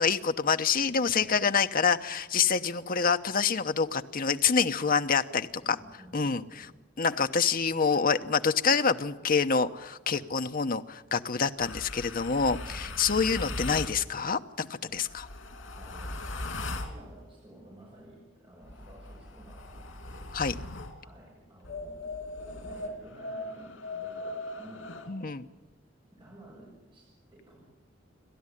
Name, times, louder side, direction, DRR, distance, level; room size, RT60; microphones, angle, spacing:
voice 1, 0.0-5.5 6.1-6.4 7.0-14.7 14.9-15.2 20.3-20.5 25.1-25.4, left 5 dB, 50° left, 8 dB, 0.9 m, -26 dB
voice 2, 1.1-1.4 5.6-6.7 10.1-10.3 12.6-12.9 14.8-15.3 15.8-16.2 16.9-20.3 21.0-22.1 22.5-23.7 24.0-25.0 26.2-27.6, right 1 dB, 25° right, -2 dB, 6.3 m, -53 dB
sound 1, 11.6-14.0 14.9-17.0 18.6-21.0 21.6-25.1, left 2 dB, 90° left, 3.0 m, -39 dB
29.0 x 12.5 x 10.0 m, 1.1 s
head